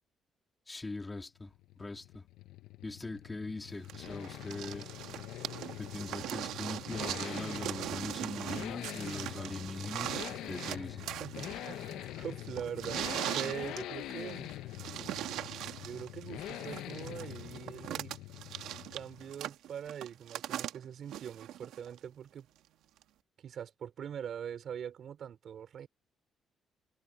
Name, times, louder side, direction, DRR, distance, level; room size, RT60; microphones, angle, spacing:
voice 1, 0.7-2.2 2.8-4.9 5.8-11.1, left 3 dB, 20° left, 2.1 m, -41 dB
sound 1, 1.4-19.4, left 14 dB, 90° left, 0.6 m, -44 dB
sound 2, 3.9-22.0 23.0-23.1, right 12 dB, 85° right, 1.4 m, -40 dB
voice 2, 11.2-14.5 15.8-18.2 18.9-22.5 23.4-25.9, right 8 dB, 65° right, 3.9 m, -43 dB
cardioid pair, 90°, 0 cm